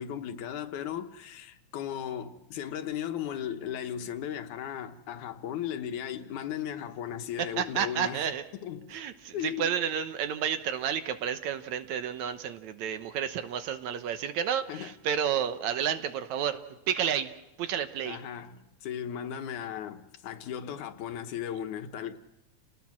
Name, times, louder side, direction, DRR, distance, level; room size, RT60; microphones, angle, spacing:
voice 1, 0.0-8.3 8.6-9.0 9.3-9.7 14.7-14.9 18.0-22.2, left 9 dB, 85° left, 2.6 m, -36 dB
voice 2, 7.4-8.4 8.9-16.6 16.9-17.3 17.6-18.2, right 8 dB, 75° right, 2.3 m, -31 dB
29.5 x 19.0 x 6.1 m
omnidirectional pair, 3.4 m